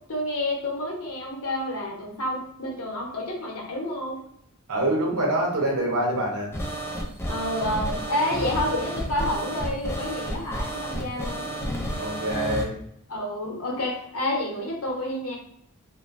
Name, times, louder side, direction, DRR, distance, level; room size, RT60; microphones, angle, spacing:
voice 1, 0.1-4.2 7.3-11.5 13.1-15.4, left 1 dB, 70° left, -2 dB, 0.8 m, -29 dB
voice 2, 4.7-6.5 12.0-12.8, right 1 dB, 80° right, -1 dB, 0.8 m, -25 dB
sound 1, 6.5-12.6, right 1 dB, 10° left, 0.4 m, -31 dB
2.9 x 2.1 x 2.5 m, 0.69 s
head